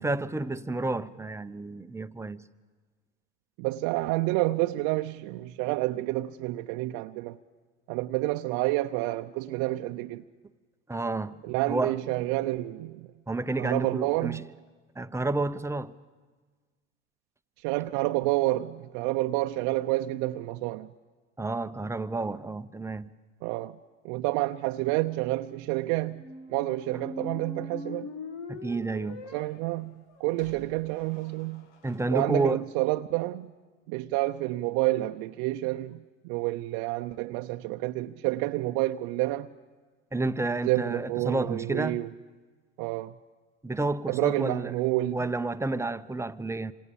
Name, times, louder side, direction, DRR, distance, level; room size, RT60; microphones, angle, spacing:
voice 1, 0.0-2.4 10.9-11.4 11.7-11.9 13.3-14.4 15.0-15.9 21.4-23.1 28.5-29.2 31.8-32.6 40.1-42.0 43.6-44.7 45.1-46.7, right 2 dB, 10° right, 0.7 m, -30 dB
voice 2, 3.6-7.4 7.9-10.2 11.4-13.1 13.6-14.5 17.6-20.9 23.4-23.8 24.0-28.1 29.3-31.7 32.1-33.5 33.9-39.5 40.6-42.1 42.8-43.2 44.1-45.2, right 18 dB, 55° right, 0.7 m, -29 dB
sound 1, 26.1-32.0, left 3 dB, 70° left, 2.1 m, -43 dB
26.5 x 26.0 x 7.1 m
hypercardioid pair, 75°, 35 cm